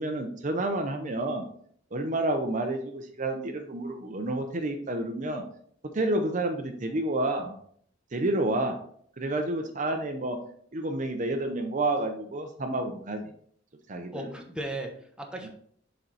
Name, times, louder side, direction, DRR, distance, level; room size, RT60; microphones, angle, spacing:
voice 1, 0.0-1.5 1.9-5.4 5.9-7.6 8.1-8.8 9.2-10.4 10.7-13.3 13.9-14.3 15.4-15.5, right 2 dB, 40° right, 5 dB, 0.6 m, -29 dB
voice 2, 14.1-15.5, right 1 dB, 5° right, 2 dB, 0.9 m, -36 dB
6.7 x 4.4 x 4.1 m, 0.62 s
head